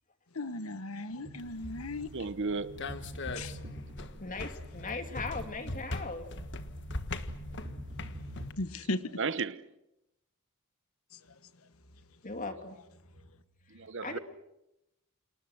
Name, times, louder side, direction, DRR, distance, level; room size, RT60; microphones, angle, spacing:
voice 1, 0.3-2.1 3.3-3.5 8.6-9.0, left 2 dB, 75° left, 1.3 m, -36 dB
sound 1, 1.1-8.5, equal, 35° right, 4.5 m, -45 dB
sound 2, 1.4-8.5, left 2 dB, 55° left, 1.5 m, -42 dB
voice 2, 2.0-3.0 9.2-9.7 13.7-14.2, right 4 dB, 60° right, 0.9 m, -34 dB
voice 3, 4.2-6.3 12.2-12.8 13.7-14.2, left 3 dB, 35° left, 2.8 m, -39 dB
30.0 x 27.5 x 6.2 m
head